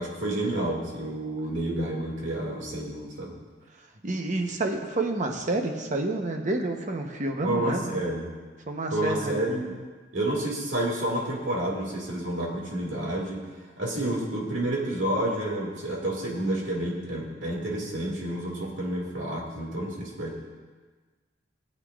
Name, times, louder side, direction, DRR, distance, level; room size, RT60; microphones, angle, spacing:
voice 1, 0.0-3.3 7.4-8.3 8.9-9.8 10.1-13.4 13.8-20.5, right 1 dB, 90° right, -2 dB, 2.3 m, -29 dB
voice 2, 4.0-8.0 8.7-9.4, right 2 dB, 40° right, 3 dB, 0.9 m, -29 dB
18.0 x 8.2 x 2.4 m, 1.4 s
head